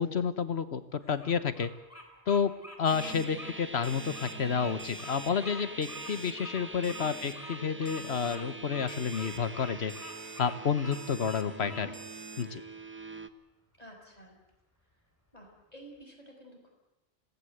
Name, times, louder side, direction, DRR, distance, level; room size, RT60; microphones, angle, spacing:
voice 1, 0.0-1.7 2.3-2.5 2.8-9.9 10.4-11.9 12.4-12.6, left 6 dB, 80° left, 12 dB, 1.5 m, -30 dB
Bird vocalization bird call bird song, 1.0-11.9, left 1 dB, 15° left, 3.8 m, -46 dB
Alarm, 2.8-3.3 3.8-4.3 4.8-5.3 5.8-6.3 6.8-7.3 7.8-8.4 8.9-9.4 9.9-10.4 10.9-11.4 11.9-12.4, right 5 dB, 45° right, 1.8 m, -48 dB
sound 1, 2.9-13.3, right 2 dB, 10° right, 0.9 m, -44 dB
voice 2, 13.8-14.4 15.3-16.7, right 1 dB, 35° left, 0 dB, 5.9 m, -51 dB
26.5 x 18.0 x 8.1 m, 0.97 s
omnidirectional pair, 1.1 m